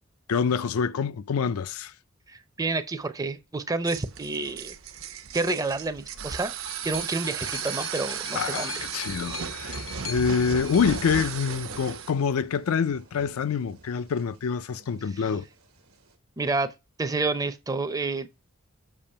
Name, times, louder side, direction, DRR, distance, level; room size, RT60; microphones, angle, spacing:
voice 1, 0.3-1.9 8.3-15.5, left 6 dB, 80° left, 0.4 m, -26 dB
voice 2, 2.3-4.7 5.3-6.6 6.8-8.8 9.2-9.3 16.4-16.7 17.0-18.3, right 3 dB, 15° right, 0.5 m, -29 dB
sound 1, 3.8-12.1, right 7 dB, 65° right, 0.7 m, -35 dB
sound 2, 4.5-16.2, right 2 dB, 90° right, 1.3 m, -50 dB
sound 3, 6.0-12.0 12.9-13.0, left 5 dB, 60° left, 0.8 m, -41 dB
6.9 x 2.8 x 5.5 m
head